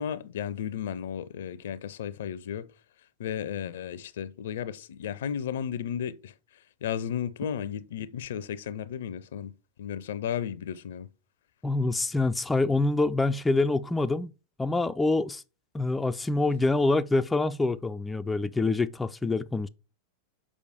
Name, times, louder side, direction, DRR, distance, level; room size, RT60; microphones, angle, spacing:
voice 1, 0.0-2.7 3.2-6.3 6.8-9.5 9.8-11.1, left 9 dB, 60° left, 0.5 m, -34 dB
voice 2, 11.6-14.3 14.6-15.4 15.7-19.7, left 2 dB, 10° left, 0.3 m, -26 dB
6.3 x 5.1 x 4.9 m
figure-of-eight pair, 90°, 0 cm